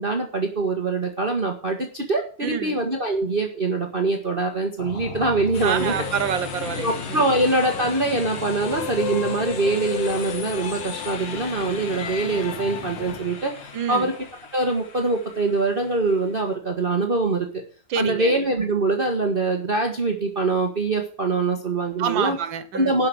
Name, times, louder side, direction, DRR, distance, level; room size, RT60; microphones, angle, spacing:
voice 1, 0.0-5.9 6.8-14.1 14.5-17.5 17.9-22.4 22.7-23.1, right 3 dB, 30° right, 1.5 m, -24 dB
voice 2, 2.4-2.8 5.6-7.2 13.7-14.1 17.9-18.3 22.0-22.9, right 8 dB, 85° right, 1.8 m, -27 dB
sound 1, 4.8-14.7, left 4 dB, 35° left, 1.6 m, -39 dB
sound 2, 5.5-16.5, left 5 dB, 65° left, 2.2 m, -40 dB
sound 3, 5.7-13.2, left 9 dB, 85° left, 1.6 m, -34 dB
11.5 x 5.8 x 7.8 m
omnidirectional pair, 2.0 m